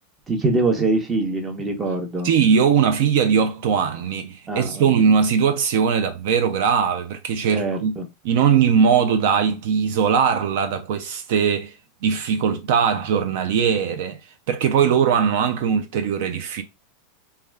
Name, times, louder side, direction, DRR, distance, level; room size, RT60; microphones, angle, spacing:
voice 1, 0.3-2.3 4.5-4.9 7.5-8.0, right 2 dB, 20° right, 0.7 m, -23 dB
voice 2, 2.2-8.0 8.2-11.8 12.0-14.2 14.5-16.6, right 7 dB, 70° right, 0.4 m, -20 dB
2.3 x 2.2 x 3.3 m
supercardioid pair, 135°, 0 cm